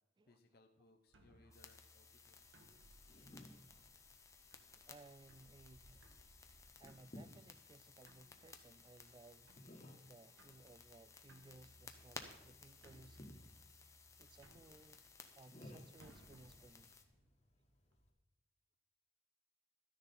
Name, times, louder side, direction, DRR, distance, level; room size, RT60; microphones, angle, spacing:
voice 1, 0.2-2.3, left 2 dB, 55° left, 0.7 m, -68 dB
sound 1, 1.1-18.0, right 1 dB, 90° right, 1.6 m, -67 dB
sound 2, 1.5-17.0, left 4 dB, 15° left, 0.8 m, -59 dB
sound 3, 2.2-18.1, left 1 dB, 35° left, 1.4 m, -62 dB
voice 2, 3.4-4.0 4.7-6.1 6.8-9.6 10.0-13.2 14.2-15.0 15.4-17.0, right 2 dB, 25° right, 0.3 m, -62 dB
13.0 x 10.0 x 4.3 m
head